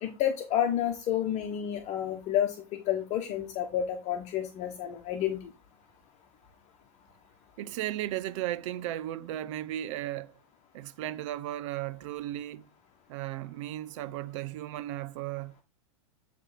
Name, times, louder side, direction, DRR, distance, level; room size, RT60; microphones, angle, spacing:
voice 1, 0.0-5.4, left 10 dB, 40° left, 1.2 m, -30 dB
voice 2, 7.6-10.4 10.7-12.7 13.1-15.6, right 13 dB, 60° right, 0.7 m, -35 dB
9.1 x 3.4 x 4.9 m
hypercardioid pair, 115°, 18 cm